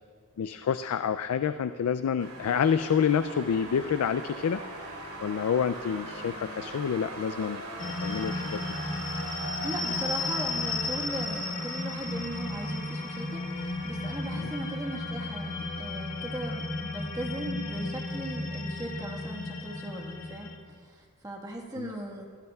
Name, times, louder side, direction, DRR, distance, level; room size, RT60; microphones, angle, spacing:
voice 1, 0.4-4.6 5.2-8.6 14.3-14.5 21.8-21.9, left 7 dB, 80° left, 11 dB, 0.4 m, -28 dB
sound 1, 2.2-17.0, right 2 dB, 85° right, 2.8 m, -42 dB
sound 2, 7.8-20.6, left 2 dB, 40° left, 1.4 m, -34 dB
voice 2, 9.6-20.5 20.8-22.3, right 1 dB, 15° right, 0 dB, 1.4 m, -38 dB
23.0 x 16.0 x 2.3 m, 2.1 s
head